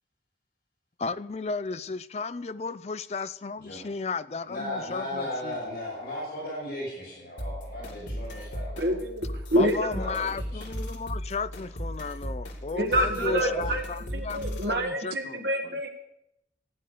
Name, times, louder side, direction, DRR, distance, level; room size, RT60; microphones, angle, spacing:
voice 1, 1.0-5.6 9.5-15.8, left 4 dB, 35° left, 15 dB, 0.4 m, -34 dB
voice 2, 4.5-8.9 10.0-10.6 13.2-13.7, left 1 dB, 60° left, -4 dB, 5.9 m, -35 dB
sound 1, 7.4-14.8, equal, 90° left, 2.7 m, -36 dB
voice 3, 8.8-9.9 12.7-13.9 14.1-15.9, right 1 dB, 70° right, 4 dB, 1.8 m, -27 dB
15.0 x 9.4 x 6.7 m, 0.83 s
head